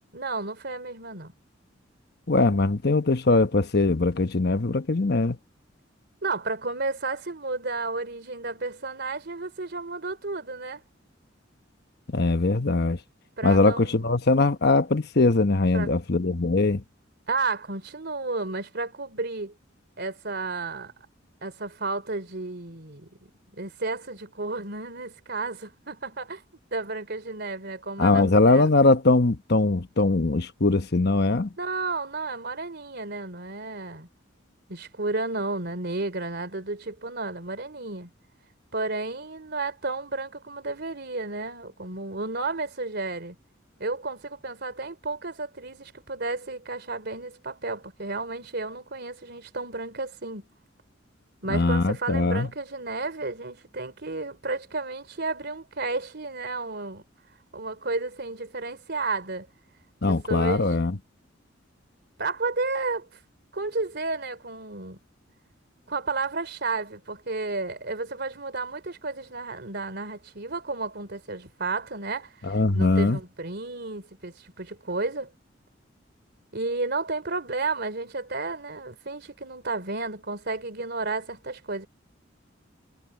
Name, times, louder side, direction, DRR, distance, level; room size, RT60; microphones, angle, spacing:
voice 1, 0.1-1.3 6.2-10.8 13.4-14.0 15.7-15.9 17.3-19.5 20.0-20.9 21.4-26.4 26.7-28.7 31.6-34.1 34.7-38.1 38.7-43.4 43.8-50.5 51.4-57.0 57.5-59.5 60.1-60.7 62.2-63.1 63.5-65.0 65.9-75.3 76.5-81.9, right 3 dB, 60° right, 3.4 m, -32 dB
voice 2, 2.3-5.4 12.1-13.0 13.4-16.8 28.0-31.5 51.5-52.5 60.0-60.9 72.5-73.2, left 3 dB, 55° left, 1.1 m, -21 dB
head